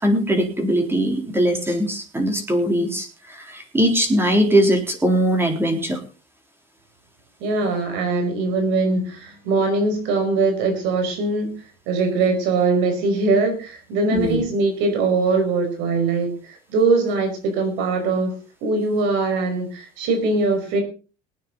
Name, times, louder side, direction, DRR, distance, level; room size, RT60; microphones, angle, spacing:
voice 1, 0.0-6.0 14.1-14.4, right 1 dB, 10° right, 4 dB, 3.7 m, -20 dB
voice 2, 7.4-11.6 11.9-18.3 18.6-20.8, right 3 dB, 75° right, 5 dB, 5.3 m, -21 dB
21.0 x 9.4 x 4.0 m, 0.34 s
cardioid pair, 120°, 19 cm